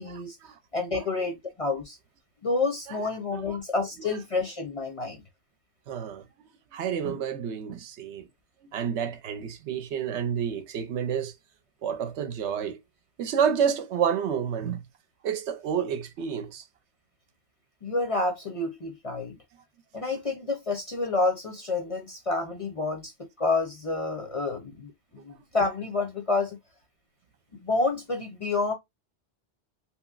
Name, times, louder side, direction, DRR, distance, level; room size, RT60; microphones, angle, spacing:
voice 1, 0.0-0.4 0.7-2.0 2.4-5.2 17.8-19.4 19.9-26.6 27.6-28.7, left 3 dB, 40° left, 0.6 m, -29 dB
voice 2, 5.9-6.3 6.7-8.3 8.7-11.3 11.8-12.8 13.2-14.8 15.2-16.7, right 8 dB, 75° right, 0.9 m, -29 dB
2.9 x 2.9 x 2.3 m
omnidirectional pair, 1.2 m